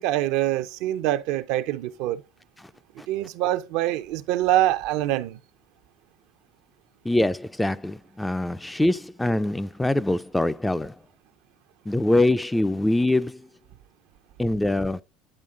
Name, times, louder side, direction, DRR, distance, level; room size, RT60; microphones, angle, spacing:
voice 1, 0.0-2.2 3.1-5.4, right 14 dB, 75° right, 0.5 m, -25 dB
voice 2, 7.0-10.9 11.9-13.5 14.4-15.0, left 1 dB, 5° left, 0.3 m, -24 dB
10.0 x 3.6 x 3.7 m
supercardioid pair, 120°, 0 cm